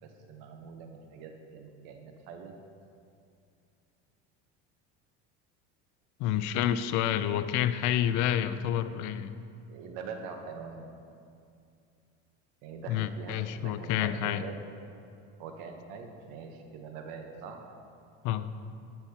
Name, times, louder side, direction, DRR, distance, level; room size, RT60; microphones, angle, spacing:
voice 1, 0.0-2.6 9.7-10.8 12.6-14.6 15.4-17.6, right 5 dB, 70° right, 4 dB, 1.0 m, -43 dB
voice 2, 6.2-9.3 12.9-14.4 18.2-18.5, left 10 dB, 55° left, 13 dB, 0.5 m, -29 dB
14.0 x 5.9 x 2.8 m, 2.4 s
supercardioid pair, 95°, 35 cm